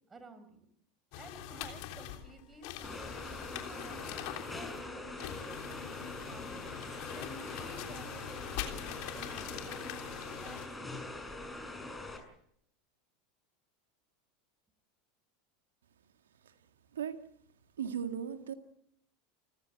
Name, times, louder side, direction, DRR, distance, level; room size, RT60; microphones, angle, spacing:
voice 1, 0.1-0.7 1.2-4.2 4.5-7.2 7.5-10.0 10.4-10.9, right 3 dB, 20° right, 11 dB, 5.1 m, -53 dB
sound 1, 1.1-10.7, left 11 dB, 60° left, 3.3 m, -43 dB
sound 2, 2.8-12.2, left 2 dB, 10° left, 6.5 m, -43 dB
voice 2, 16.9-17.3 17.8-18.5, right 8 dB, 80° right, 7 dB, 1.9 m, -37 dB
29.0 x 15.5 x 7.9 m, 0.73 s
hypercardioid pair, 85°, 0 cm